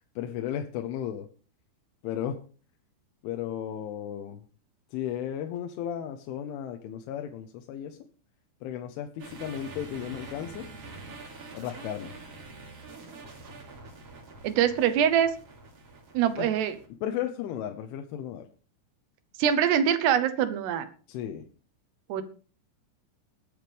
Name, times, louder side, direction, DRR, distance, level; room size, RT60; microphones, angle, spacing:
voice 1, 0.2-1.3 2.0-2.4 3.2-4.4 4.9-8.0 8.6-10.7 11.6-12.1 16.4-16.5 17.0-18.5 21.1-21.5, left 10 dB, 80° left, 5 dB, 3.4 m, -34 dB
sound 1, 9.2-16.9, right 3 dB, 35° right, 3.0 m, -45 dB
voice 2, 14.4-15.4 16.1-16.8 19.4-20.9 22.1-22.2, right 9 dB, 70° right, 11 dB, 2.8 m, -24 dB
20.5 x 8.7 x 3.4 m, 0.39 s
omnidirectional pair, 5.5 m